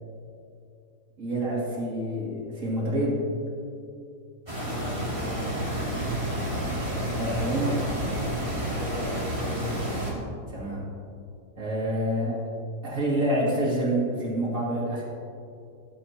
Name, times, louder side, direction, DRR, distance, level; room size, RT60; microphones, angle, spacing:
voice 1, 1.2-3.2 7.1-7.8 10.5-10.9 11.6-12.4 12.8-15.0, right 1 dB, 55° right, -5 dB, 2.7 m, -27 dB
sound 1, 4.5-10.1, right 1 dB, 20° right, 2.7 m, -30 dB
voice 2, 4.7-6.0 8.6-9.8, equal, 25° left, -6 dB, 3.1 m, -39 dB
22.0 x 7.6 x 2.9 m, 2.5 s
omnidirectional pair, 1.7 m